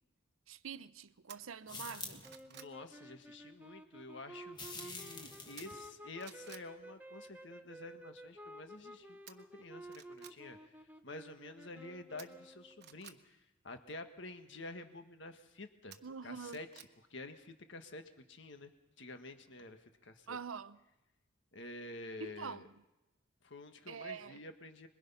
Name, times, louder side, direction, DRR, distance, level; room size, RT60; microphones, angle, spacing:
voice 1, 0.5-2.2 16.0-16.6 20.3-20.8 22.2-22.7 23.9-24.4, right 6 dB, 85° right, 0.7 m, -45 dB
sound 1, 1.3-1.4 1.9-2.8 5.6-5.9 6.2-6.7 9.3-9.4 9.9-10.4 12.2-13.2 15.9-16.9 17.3-17.4, right 9 dB, 50° right, 1.1 m, -54 dB
sound 2, 1.7-2.4 4.5-5.9, left 3 dB, 20° left, 1.6 m, -47 dB
sound 3, 2.2-13.0, right 1 dB, 10° right, 1.0 m, -53 dB
voice 2, 2.5-10.7 11.0-16.7 17.1-18.7 19.0-20.4 21.5-22.7 23.4-24.9, left 2 dB, 60° left, 1.6 m, -49 dB
26.0 x 22.0 x 5.7 m
head